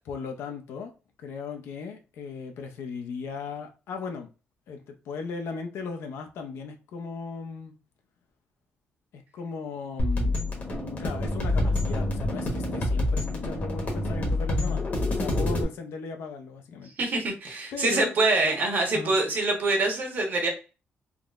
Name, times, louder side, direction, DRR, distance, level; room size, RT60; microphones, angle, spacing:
voice 1, 0.1-0.9 1.2-4.3 4.7-7.7 9.1-10.4 11.0-14.8 15.2-16.9 17.7-18.2 18.9-19.2, left 5 dB, 90° left, 0.5 m, -37 dB
sound 1, 10.0-15.6, left 1 dB, 45° left, 1.0 m, -27 dB
voice 2, 17.0-20.5, right 2 dB, 50° right, 0.9 m, -25 dB
3.6 x 2.1 x 2.3 m
cardioid pair, 150°, 4 cm